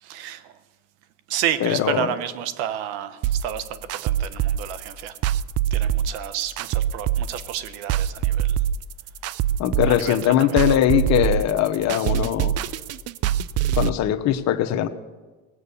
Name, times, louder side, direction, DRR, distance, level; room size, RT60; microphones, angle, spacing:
voice 1, 0.0-0.5 1.3-5.2 5.7-8.6 9.9-10.8, right 10 dB, 80° right, 13 dB, 1.1 m, -30 dB
voice 2, 1.6-2.1 9.6-12.5 13.7-14.9, left 11 dB, 55° left, 10 dB, 1.1 m, -21 dB
sound 1, 3.2-13.9, right 11 dB, 50° right, 0.5 m, -24 dB
18.5 x 8.0 x 7.0 m, 1.3 s
supercardioid pair, 90°, 32 cm